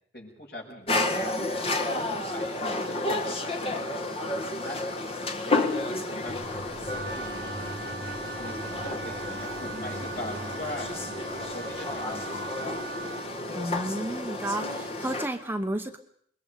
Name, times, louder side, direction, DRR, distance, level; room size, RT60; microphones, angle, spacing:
voice 1, 0.1-1.3 1.9-3.8 4.2-4.8 5.1-7.7 8.3-12.7, left 1 dB, 70° left, -1 dB, 7.9 m, -41 dB
sound 1, 0.9-15.3, left 2 dB, 35° left, 1.5 m, -31 dB
sound 2, 6.3-12.5, right 2 dB, 50° right, 1.3 m, -44 dB
Wind instrument woodwind instrument, 6.9-13.3, right 4 dB, 75° right, 1.1 m, -40 dB
voice 2, 13.5-16.0, right 1 dB, 10° right, 5 dB, 1.0 m, -32 dB
27.0 x 22.5 x 5.4 m, 0.63 s
head